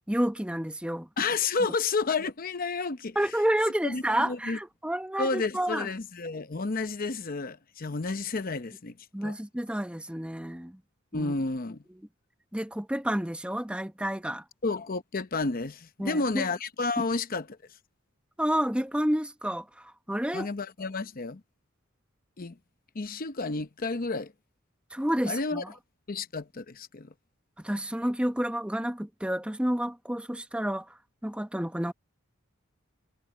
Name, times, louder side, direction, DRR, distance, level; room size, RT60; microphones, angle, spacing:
voice 1, 0.1-1.1 3.2-5.9 9.1-10.8 11.1-11.3 12.5-14.4 16.0-16.4 18.4-20.5 24.9-25.7 27.6-30.9 31.2-31.9, right 1 dB, 5° right, 0.9 m, -30 dB
voice 2, 1.2-3.4 3.8-4.6 5.2-8.9 9.2-9.4 11.1-11.8 14.6-17.6 20.3-21.4 22.4-22.6 22.9-24.3 25.3-25.7 26.1-27.1, left 3 dB, 45° left, 0.8 m, -31 dB
head